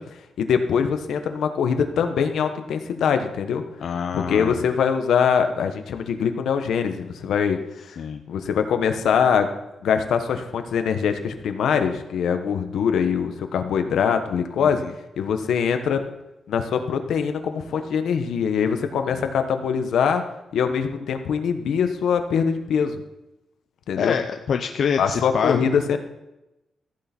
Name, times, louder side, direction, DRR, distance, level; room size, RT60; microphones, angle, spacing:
voice 1, 0.0-3.6 4.1-7.9 8.3-9.5 9.8-14.8 15.2-16.0 16.5-20.2 20.5-23.0 23.9-24.2 25.0-26.0, left 7 dB, 75° left, 7 dB, 1.1 m, -23 dB
voice 2, 3.8-4.6 8.0-8.2 14.6-14.9 19.1-19.3 24.0-25.7, left 7 dB, 55° left, 6 dB, 0.6 m, -26 dB
15.0 x 8.4 x 4.4 m, 0.93 s
wide cardioid pair, 160°, 0 cm